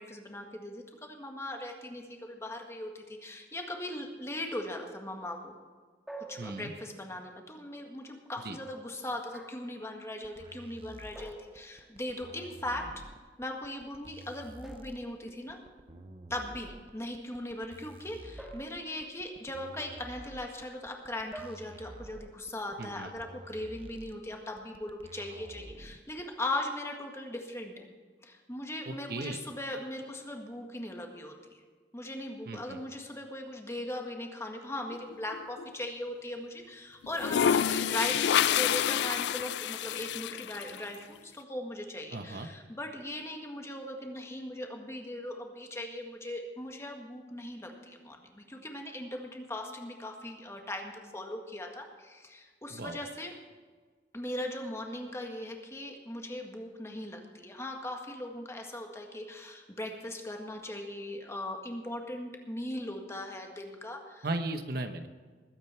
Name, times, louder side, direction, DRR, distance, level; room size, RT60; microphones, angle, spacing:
voice 1, 0.0-5.5 6.3-12.9 13.4-15.6 16.3-27.9 28.2-31.6 31.9-53.3 54.1-64.3, left 1 dB, 15° left, 2 dB, 1.7 m, -39 dB
sound 1, 6.1-7.1 9.3-9.8 11.2-12.0 14.6-15.7 18.4-19.3 21.3-21.6, right 2 dB, ahead, 1.7 m, -48 dB
voice 2, 6.4-6.7 8.4-8.6 22.8-23.1 28.9-29.4 32.5-32.8 42.1-42.5 52.7-53.0 64.2-65.1, right 2 dB, 60° right, 7 dB, 1.0 m, -36 dB
sound 2, 10.2-26.2, right 1 dB, 30° right, 0.7 m, -50 dB
sound 3, 34.9-35.7 37.0-40.8, left 9 dB, 75° left, 0.3 m, -28 dB
21.0 x 9.1 x 4.5 m, 1.5 s
head